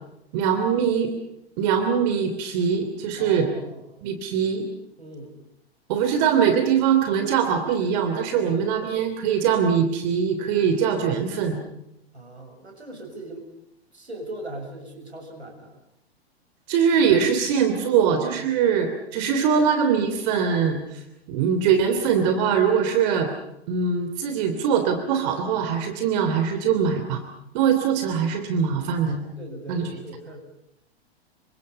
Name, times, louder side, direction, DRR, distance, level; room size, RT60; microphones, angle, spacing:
voice 1, 0.3-1.1 1.6-3.5 4.0-4.7 5.9-11.6 16.7-21.0 21.3-23.3 23.7-27.2 27.5-29.2 29.7-29.9, right 7 dB, 40° right, 7 dB, 3.1 m, -22 dB
voice 2, 3.2-3.8 5.0-5.4 8.4-8.6 12.1-13.5 13.9-15.8 29.4-30.4, right 1 dB, 80° right, 3 dB, 6.9 m, -39 dB
28.5 x 24.5 x 5.5 m, 0.81 s
figure-of-eight pair, 105°, 32 cm